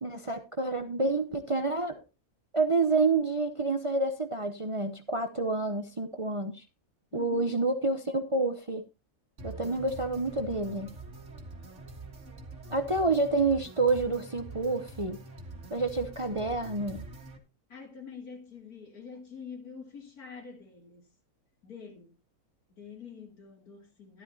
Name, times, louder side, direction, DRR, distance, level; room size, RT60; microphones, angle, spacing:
voice 1, 0.0-1.9 2.5-6.6 7.1-8.8 9.4-10.9 12.7-15.2 15.7-17.0, right 3 dB, 30° right, 0.7 m, -28 dB
voice 2, 7.1-7.6 17.7-21.1 21.6-22.1 22.7-24.2, left 6 dB, 80° left, 3.2 m, -46 dB
sound 1, 9.4-17.4, right 2 dB, 50° right, 2.1 m, -45 dB
12.0 x 12.0 x 2.8 m
omnidirectional pair, 1.6 m